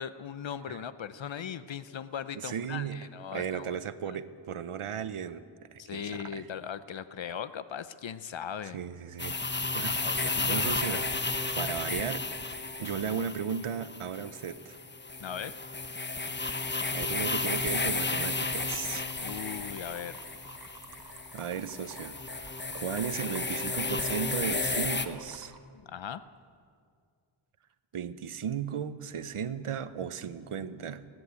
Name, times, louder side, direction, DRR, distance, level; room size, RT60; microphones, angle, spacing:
voice 1, 0.0-3.8 4.1-4.2 5.8-8.8 10.0-11.2 15.2-15.6 19.2-20.2 25.7-26.2, left 8 dB, 65° left, 14 dB, 0.7 m, -39 dB
voice 2, 2.3-3.0 3.3-5.4 5.7-6.5 8.7-9.4 9.7-11.0 11.6-12.3 12.8-14.8 16.9-19.0 21.3-25.5 27.9-31.1, right 7 dB, 85° right, 13 dB, 1.0 m, -35 dB
sound 1, 9.2-25.1, left 3 dB, 20° left, 1.0 m, -33 dB
sound 2, 18.2-25.6, right 3 dB, 45° right, 1.6 m, -52 dB
29.5 x 11.0 x 8.3 m, 2.2 s
wide cardioid pair, 110°, 49 cm